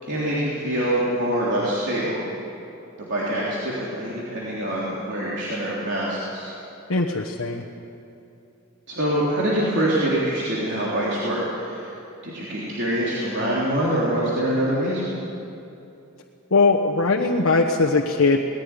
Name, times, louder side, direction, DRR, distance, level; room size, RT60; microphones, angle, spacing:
voice 1, 0.0-2.2 3.0-6.5 8.9-11.9 12.2-15.1, right 1 dB, 55° right, -7 dB, 3.6 m, -25 dB
voice 2, 6.9-7.6 16.5-18.4, left 3 dB, 75° left, -1 dB, 1.1 m, -20 dB
19.0 x 15.5 x 9.8 m, 2.8 s
head